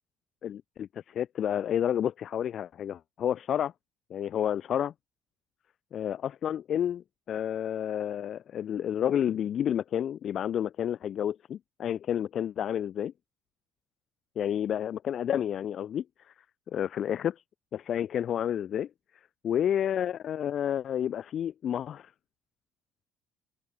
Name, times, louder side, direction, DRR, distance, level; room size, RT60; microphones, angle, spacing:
voice 1, 0.4-3.7 4.1-4.9 5.9-13.1 14.4-16.0 16.7-17.4 17.7-18.9 19.4-22.1, left 9 dB, 50° left, 0.3 m, -30 dB
open air
figure-of-eight pair, 55°, 0 cm